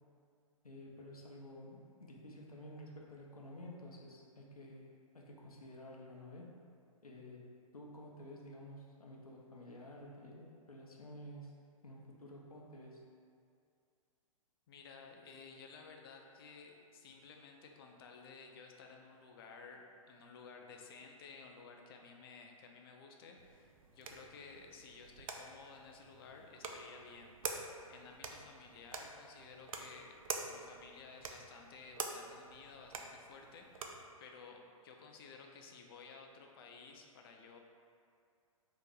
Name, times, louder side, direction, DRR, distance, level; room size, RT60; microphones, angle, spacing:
voice 1, 0.6-6.5 7.0-11.6 11.8-13.0, left 1 dB, 85° left, -2 dB, 0.6 m, -52 dB
voice 2, 14.7-30.2 30.5-37.6, left 5 dB, 40° left, 2 dB, 0.4 m, -55 dB
sound 1, 23.4-34.1, right 4 dB, 70° right, 0.4 m, -47 dB
2.9 x 2.5 x 3.7 m, 2.4 s
figure-of-eight pair, 115°, 18 cm